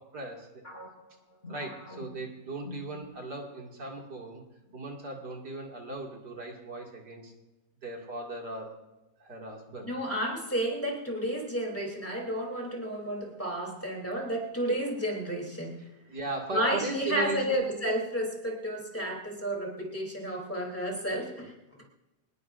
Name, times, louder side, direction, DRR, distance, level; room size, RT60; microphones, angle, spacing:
voice 1, 0.1-0.6 1.5-4.4 4.7-7.3 7.8-8.8 9.2-9.9 16.1-17.7, right 2 dB, 75° right, 0 dB, 3.0 m, -38 dB
sound 1, 0.6-3.5 3.8-4.0 4.7-5.1, left 1 dB, 35° left, 4.2 m, -46 dB
voice 2, 9.9-15.8 16.5-21.5, right 1 dB, 10° left, -2 dB, 3.2 m, -31 dB
25.0 x 19.5 x 2.6 m, 1.0 s
omnidirectional pair, 1.8 m